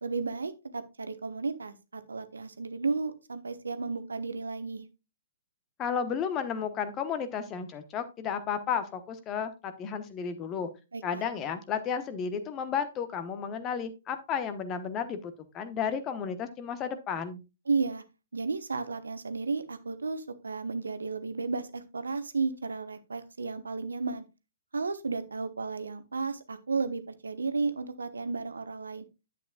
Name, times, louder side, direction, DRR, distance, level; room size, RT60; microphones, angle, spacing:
voice 1, 0.0-4.9 10.9-11.2 17.7-18.0 18.3-24.2 24.7-29.0, right 4 dB, 70° right, 11 dB, 1.0 m, -33 dB
voice 2, 5.8-10.7 11.0-17.4, left 7 dB, 25° left, 10 dB, 1.0 m, -33 dB
10.5 x 8.4 x 2.3 m, 0.27 s
figure-of-eight pair, 120°, 0 cm